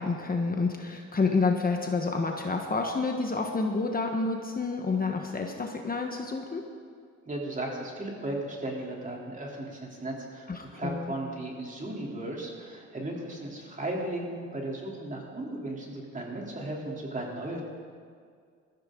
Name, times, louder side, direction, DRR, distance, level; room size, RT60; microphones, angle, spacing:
voice 1, 0.0-6.6 10.5-11.1, left 4 dB, 30° left, 2 dB, 1.3 m, -29 dB
voice 2, 7.3-17.6, right 1 dB, 25° right, -2 dB, 3.4 m, -36 dB
19.5 x 14.0 x 3.9 m, 2.1 s
cardioid pair, 90°, 30 cm